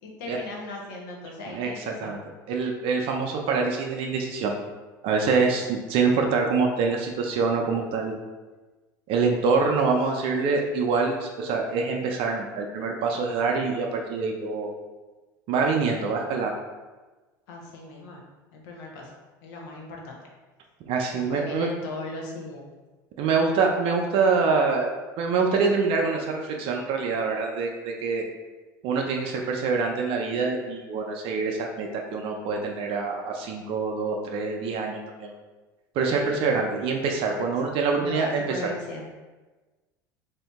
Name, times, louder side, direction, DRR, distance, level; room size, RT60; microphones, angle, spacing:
voice 1, 0.0-2.1 5.5-5.6 17.5-18.2 18.5-19.1 19.4-20.3 21.1-22.6 36.1-36.4 37.9-39.0, left 2 dB, 70° left, -1 dB, 0.8 m, -38 dB
voice 2, 1.5-2.2 2.5-4.6 5.0-8.1 9.1-14.7 15.5-16.6 20.9-21.7 23.2-28.2 28.8-35.3 36.0-38.7, right 4 dB, 55° right, 1 dB, 0.5 m, -25 dB
2.8 x 2.6 x 3.4 m, 1.2 s
hypercardioid pair, 80°, 11 cm